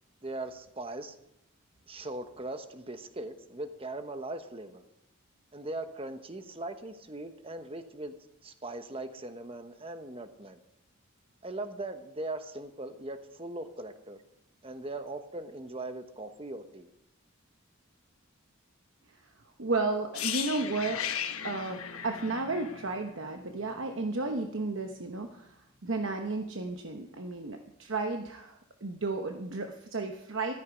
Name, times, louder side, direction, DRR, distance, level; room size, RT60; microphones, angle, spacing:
voice 1, 0.2-1.2 1.9-4.8 5.5-8.1 8.4-10.6 11.4-14.2 14.6-16.9, right 2 dB, 25° right, 8 dB, 1.1 m, -40 dB
voice 2, 19.6-21.1 21.4-30.5, right 3 dB, 60° right, 4 dB, 1.1 m, -33 dB
sound 1, 20.1-24.0 24.3-24.5, left 9 dB, 80° left, 1.3 m, -37 dB
14.5 x 13.5 x 5.2 m, 0.81 s
head